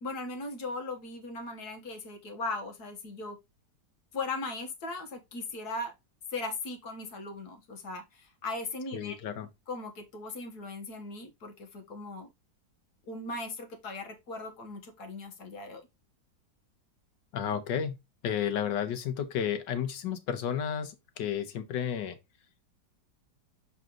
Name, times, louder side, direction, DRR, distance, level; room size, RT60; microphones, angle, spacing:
voice 1, 0.0-3.4 4.1-5.9 6.3-9.2 9.7-12.3 13.1-15.9, left 3 dB, 60° left, 1.7 m, -38 dB
voice 2, 8.9-9.5 17.3-18.0 18.2-22.2, left 8 dB, 85° left, 1.6 m, -32 dB
6.2 x 4.0 x 3.8 m
omnidirectional pair, 1.9 m